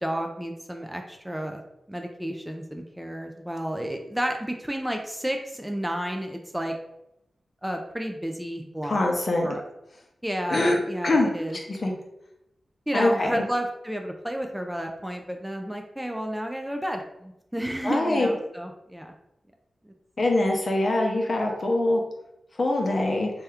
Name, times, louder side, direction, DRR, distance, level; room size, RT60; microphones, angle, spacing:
voice 1, 0.0-1.6 1.9-6.7 7.6-9.0 9.4-9.6 10.2-12.0 12.9-19.1 19.8-19.9, equal, 5° right, 3 dB, 0.3 m, -31 dB
voice 2, 8.8-9.5 10.5-10.8 11.0-11.3 11.7-11.9 12.9-13.4 17.8-18.3 20.2-22.0 22.6-23.3, left 2 dB, 50° left, 1 dB, 0.6 m, -23 dB
2.8 x 2.3 x 3.4 m, 0.85 s
wide cardioid pair, 90°, 0 cm